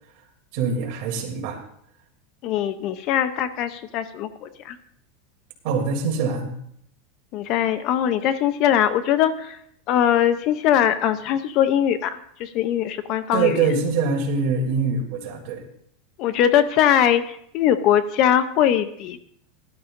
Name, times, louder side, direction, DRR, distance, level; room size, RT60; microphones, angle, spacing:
voice 1, 0.5-1.6 5.6-6.5 13.3-15.6, right 5 dB, 50° right, 1 dB, 2.8 m, -24 dB
voice 2, 2.4-4.8 7.3-9.6 9.9-13.7 16.2-19.2, left 10 dB, 40° left, 12 dB, 0.6 m, -21 dB
18.5 x 12.0 x 2.6 m, 0.69 s
supercardioid pair, 160°, 0 cm